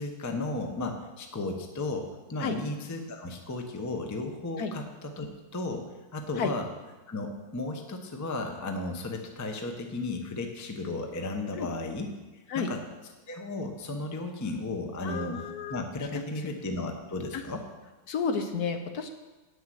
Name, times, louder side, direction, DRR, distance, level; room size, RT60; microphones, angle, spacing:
voice 1, 0.0-5.3 5.5-5.8 6.1-6.7 7.1-12.1 12.5-12.8 13.3-15.4 15.7-17.7, left 2 dB, 15° left, 3 dB, 0.6 m, -34 dB
voice 2, 15.0-15.8 16.1-16.2 17.3-17.4 18.1-19.1, left 6 dB, 65° left, 7 dB, 1.2 m, -31 dB
8.9 x 6.7 x 7.7 m, 1.2 s
omnidirectional pair, 1.9 m